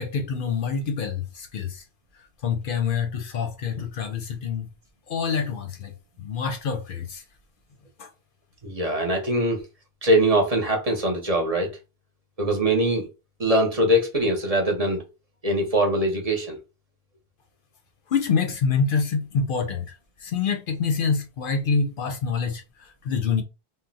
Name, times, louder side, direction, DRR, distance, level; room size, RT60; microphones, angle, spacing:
voice 1, 0.0-1.8 2.4-4.7 5.1-5.9 6.2-7.2 8.0-8.1 18.1-23.4, left 5 dB, 65° left, 0.7 m, -26 dB
voice 2, 8.6-9.6 10.0-11.7 12.4-13.1 13.4-15.0 15.4-16.6, right 1 dB, 40° right, 0.8 m, -22 dB
2.6 x 2.1 x 3.8 m
omnidirectional pair, 1.0 m